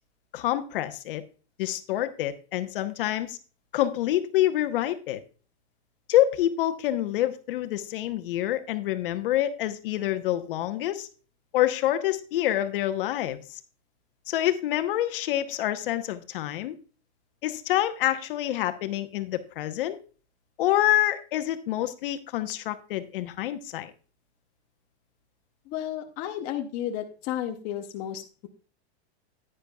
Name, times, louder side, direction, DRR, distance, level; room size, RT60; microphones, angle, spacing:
voice 1, 0.3-1.2 1.6-3.4 3.7-5.2 6.1-11.1 11.5-13.6 14.3-16.7 17.4-20.0 20.6-23.9, left 13 dB, 55° left, 10 dB, 1.0 m, -27 dB
voice 2, 25.7-28.5, left 11 dB, 25° left, 3 dB, 0.7 m, -33 dB
10.0 x 10.0 x 2.3 m, 0.36 s
supercardioid pair, 175°, 34 cm